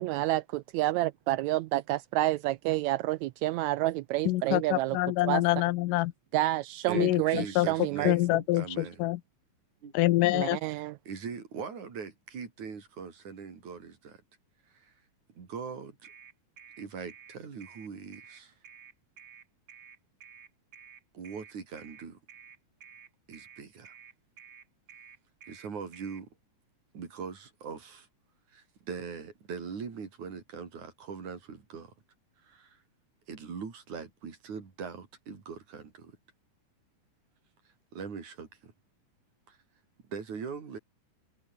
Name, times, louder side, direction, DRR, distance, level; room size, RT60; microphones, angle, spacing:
voice 1, 0.0-5.0 5.2-5.4 6.3-8.1 10.3-11.0, right 16 dB, 85° right, 1.6 m, -29 dB
voice 2, 4.3-6.1 6.9-7.7 8.0-9.2 9.9-10.6, left 17 dB, 85° left, 2.3 m, -26 dB
voice 3, 6.9-9.0 9.8-9.9 11.1-14.2 14.7-14.9 15.3-16.1 16.8-18.5 21.1-22.2 23.3-23.9 25.5-26.3 26.9-28.1 28.5-31.9 32.4-32.8 33.3-36.2 37.9-38.7 39.5-39.6 40.1-40.8, right 6 dB, 60° right, 5.0 m, -41 dB
sound 1, 16.0-26.2, right 7 dB, 45° right, 1.5 m, -52 dB
omnidirectional pair, 3.8 m